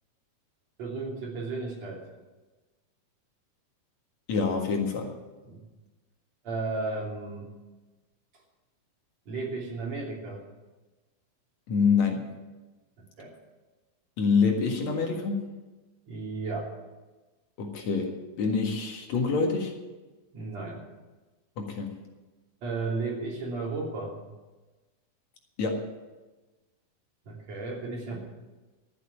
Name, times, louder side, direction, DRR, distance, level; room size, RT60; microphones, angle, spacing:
voice 1, 0.8-2.0 5.5-5.6 6.4-7.5 9.3-10.4 13.2-13.3 16.1-16.7 20.3-20.8 22.6-24.2 27.3-28.2, right 3 dB, 60° right, -2 dB, 4.3 m, -34 dB
voice 2, 4.3-5.1 11.7-12.3 14.2-15.5 17.6-19.7 21.6-21.9 25.6-25.8, left 5 dB, 65° left, 2 dB, 2.9 m, -26 dB
13.5 x 8.0 x 9.7 m, 1.2 s
omnidirectional pair, 3.5 m